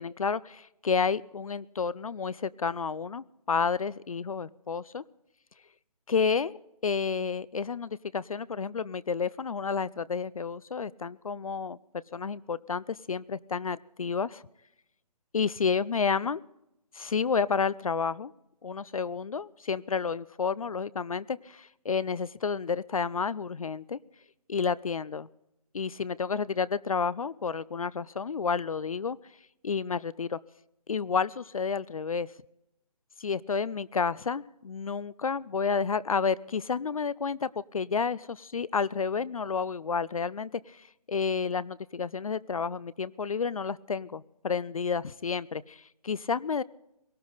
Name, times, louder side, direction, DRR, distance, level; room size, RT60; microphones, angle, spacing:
voice 1, 0.0-5.0 6.1-6.6 6.8-11.8 12.1-14.4 15.3-16.4 16.9-18.3 18.6-24.0 24.5-25.3 25.7-29.2 29.6-30.4 30.9-32.3 33.2-46.6, left 5 dB, 60° left, 20 dB, 0.4 m, -30 dB
19.0 x 18.0 x 4.0 m, 0.86 s
hypercardioid pair, 175°, 20 cm